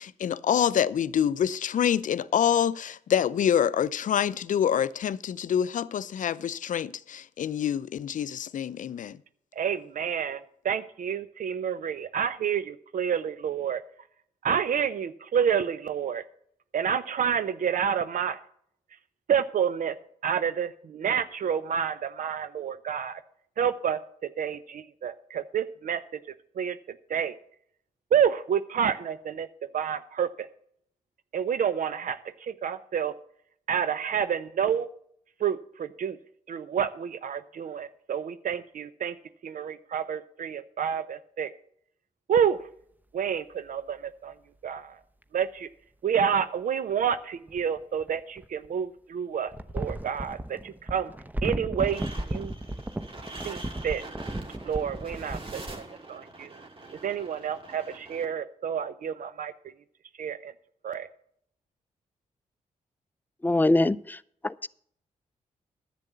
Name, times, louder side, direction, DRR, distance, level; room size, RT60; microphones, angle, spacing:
voice 1, 0.0-9.2, left 9 dB, 60° left, 0.5 m, -26 dB
voice 2, 9.6-13.8 14.4-16.2 16.7-18.4 19.3-20.0 20.2-23.2 23.6-26.2 26.6-26.8 27.1-27.4 28.1-29.5 29.7-30.5 31.3-33.1 33.7-34.9 35.4-36.2 36.5-39.1 39.4-41.5 42.3-42.6 43.1-44.3 44.6-45.0 45.3-45.7 46.0-51.1 51.4-52.5 53.4-54.0 54.7-55.8 56.1-56.5 57.0-59.5 60.2-60.5 60.8-61.1, right 8 dB, 65° right, 0.7 m, -29 dB
sound 1, 45.2-45.3 47.5-48.7 49.5-55.8, right 1 dB, 10° right, 0.8 m, -35 dB
sound 2, 51.8-58.2, right 2 dB, 35° right, 2.3 m, -44 dB
voice 3, 63.4-64.2 64.4-64.7, left 2 dB, 10° left, 0.5 m, -23 dB
10.5 x 7.6 x 6.9 m
supercardioid pair, 45°, 15 cm